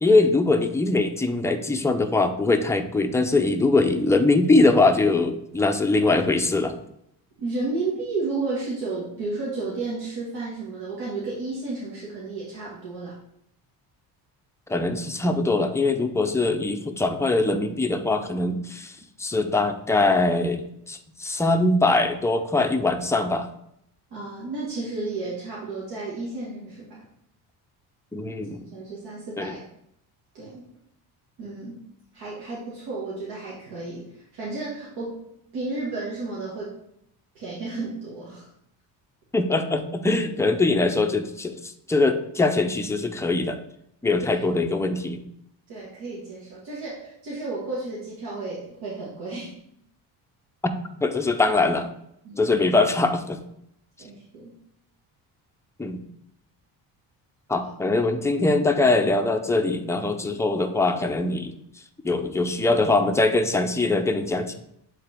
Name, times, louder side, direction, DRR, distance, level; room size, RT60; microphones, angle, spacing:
voice 1, 0.0-6.7 14.7-18.9 19.2-23.5 28.1-28.6 29.4-29.5 39.3-43.6 44.0-45.2 51.0-51.9 52.4-53.4 55.8-56.0 57.5-61.6 62.0-64.5, left 2 dB, 10° left, 5 dB, 0.3 m, -22 dB
voice 2, 7.4-13.2 24.1-27.0 28.7-29.6 30.3-30.6 31.4-31.8 32.1-35.2 35.5-36.8 37.4-38.5 44.2-44.4 45.7-49.5 52.2-52.6 54.0-54.5 57.6-57.7, right 3 dB, 80° right, -6 dB, 1.7 m, -32 dB
7.9 x 3.8 x 3.4 m, 0.75 s
cardioid pair, 140°, 39 cm